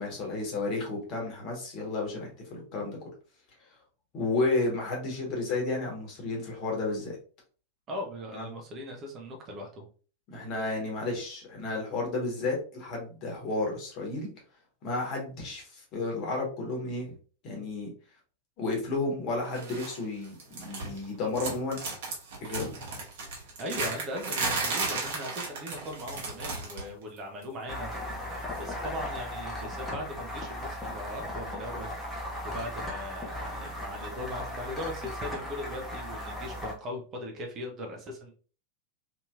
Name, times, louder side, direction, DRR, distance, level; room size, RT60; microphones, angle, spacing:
voice 1, 0.0-3.0 4.1-7.2 8.3-8.5 10.3-14.3 14.8-17.1 17.4-17.9 18.6-21.8 22.4-22.8, left 3 dB, 40° left, 0 dB, 1.3 m, -32 dB
voice 2, 7.9-9.9 23.6-28.0 28.2-38.3, left 1 dB, 30° right, 2 dB, 0.7 m, -39 dB
sound 1, 19.5-20.0 20.2-21.1 21.3-26.9 27.2-27.4 28.5-28.6, right 3 dB, 55° right, 1.1 m, -34 dB
sound 2, 27.7-36.7, left 1 dB, 5° left, 0.9 m, -37 dB
2.9 x 2.8 x 2.4 m, 0.40 s
figure-of-eight pair, 90°, 0 cm